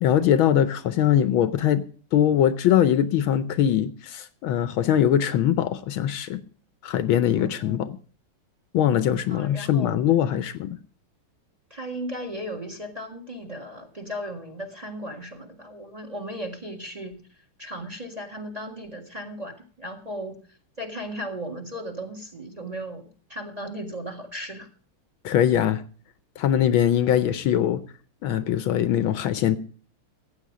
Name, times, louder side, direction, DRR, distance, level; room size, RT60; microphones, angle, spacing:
voice 1, 0.0-1.8 2.1-6.4 6.8-8.0 8.7-10.8 25.2-25.8 26.4-27.8 28.2-29.6, left 10 dB, 75° left, 13 dB, 1.5 m, -22 dB
voice 2, 7.4-7.9 9.3-10.0 11.7-24.7, equal, 20° right, 5 dB, 1.6 m, -36 dB
15.0 x 8.9 x 4.9 m, 0.42 s
omnidirectional pair, 2.4 m